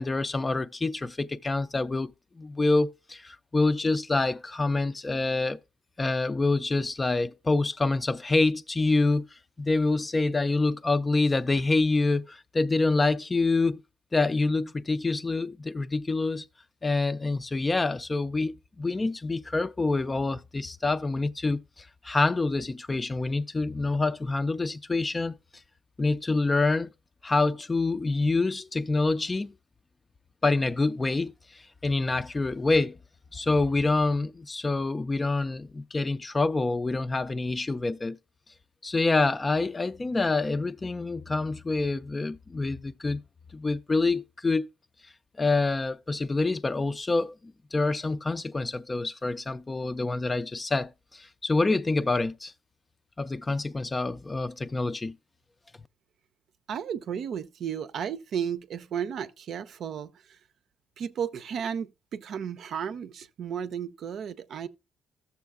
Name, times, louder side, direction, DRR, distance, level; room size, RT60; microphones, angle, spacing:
voice 1, 0.0-5.6 6.0-13.8 14.1-16.5 16.8-25.4 26.0-26.9 27.2-29.5 30.4-33.0 33.3-38.2 38.8-43.2 43.5-44.7 45.4-47.4 47.7-52.5 53.2-55.2, left 3 dB, 25° left, 0.4 m, -26 dB
voice 2, 56.7-60.4 61.0-64.7, right 8 dB, 65° right, 0.5 m, -34 dB
13.5 x 7.0 x 2.4 m
cardioid pair, 90°, 0 cm